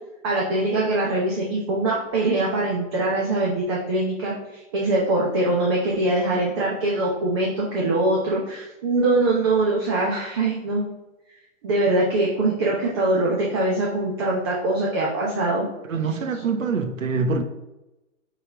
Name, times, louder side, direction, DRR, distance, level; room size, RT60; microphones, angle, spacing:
voice 1, 0.2-10.8 11.6-15.7, right 2 dB, 20° right, 0.8 m, -23 dB
voice 2, 15.9-17.4, right 4 dB, 80° right, 1.2 m, -24 dB
9.6 x 4.1 x 3.4 m
hypercardioid pair, 165°, 39 cm